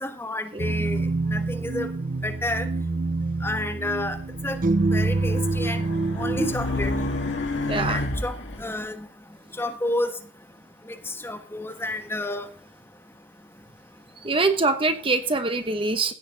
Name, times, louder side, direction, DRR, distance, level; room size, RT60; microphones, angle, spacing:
voice 1, 0.0-1.9 2.2-2.7 3.4-4.2 4.4-4.6 4.9-5.8 6.1-7.1 7.9-9.1 9.5-10.2 10.8-12.5, left 1 dB, 10° left, 6 dB, 1.4 m, -30 dB
sound 1, 0.6-6.5, right 3 dB, 45° right, 0.6 m, -26 dB
Race car auto racing, 4.3-8.6, left 1 dB, 70° left, 2.5 m, -30 dB
voice 2, 7.7-8.0 14.2-16.1, right 3 dB, 30° right, 8 dB, 1.0 m, -24 dB
16.0 x 7.9 x 3.9 m, 0.43 s
head